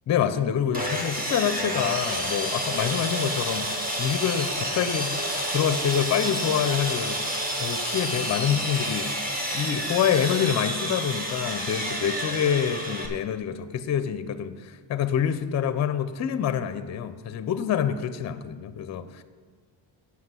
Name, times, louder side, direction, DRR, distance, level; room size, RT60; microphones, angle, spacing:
voice 1, 0.1-5.2 5.5-7.2 7.6-9.1 9.5-19.2, left 8 dB, 35° left, 12 dB, 0.5 m, -26 dB
Sawing, 0.7-13.1, equal, 20° right, 1.2 m, -29 dB
7.9 x 5.8 x 7.4 m, 1.5 s
cardioid pair, 140°, 46 cm